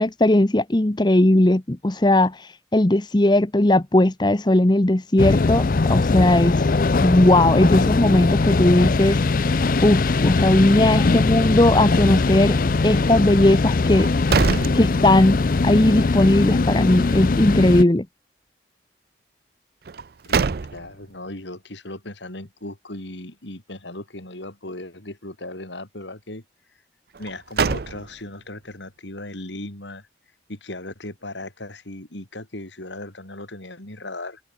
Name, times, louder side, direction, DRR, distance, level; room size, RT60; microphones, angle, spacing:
voice 1, 0.0-6.6 7.0-9.2 9.8-12.6 12.8-14.1 14.7-18.1, left 1 dB, 25° left, 0.8 m, -18 dB
sound 1, 5.2-17.8, left 3 dB, 50° left, 0.5 m, -20 dB
sound 2, 13.9-15.6 15.9-16.0 19.8-21.1 27.1-28.4, right 5 dB, 55° right, 0.5 m, -25 dB
voice 2, 20.3-26.4 27.2-30.1 30.5-34.4, left 2 dB, 75° left, 4.2 m, -37 dB
open air
head